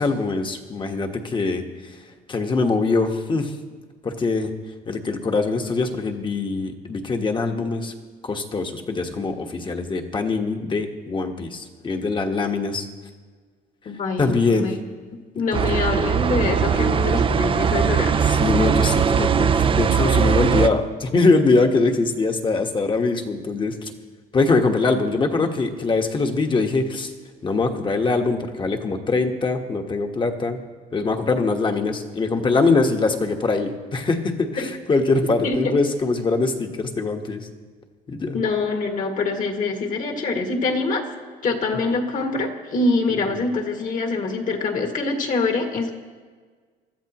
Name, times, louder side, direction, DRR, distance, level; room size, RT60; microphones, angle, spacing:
voice 1, 0.0-2.0 2.3-3.5 4.0-4.6 4.9-7.9 8.2-12.8 14.2-14.8 15.5-15.8 16.6-16.8 18.2-23.9 24.3-27.1 27.4-30.6 30.9-37.5 38.1-38.4, left 3 dB, 30° left, 4 dB, 1.4 m, -23 dB
voice 2, 13.9-14.8 15.3-18.3 34.6-34.7 35.4-35.7 38.3-41.0 41.4-46.0, left 3 dB, 50° left, 3 dB, 2.1 m, -24 dB
sound 1, 15.5-20.7, right 7 dB, 30° right, 0.6 m, -20 dB
23.5 x 13.5 x 3.0 m, 1.5 s
cardioid pair, 110°, 17 cm